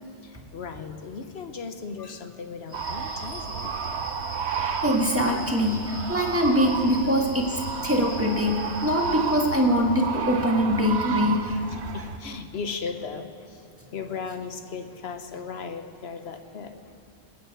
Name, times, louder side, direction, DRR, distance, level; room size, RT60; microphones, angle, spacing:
voice 1, 0.3-3.7 11.9-13.3 13.9-16.8, left 5 dB, 70° left, 7 dB, 1.2 m, -36 dB
sound 1, 2.7-9.6, equal, 20° left, 2.4 m, -41 dB
sound 2, 2.7-12.2, right 6 dB, 75° right, 1.0 m, -32 dB
voice 2, 4.6-11.6, equal, 10° right, 0 dB, 1.6 m, -23 dB
22.0 x 9.7 x 4.8 m, 2.7 s
omnidirectional pair, 1.1 m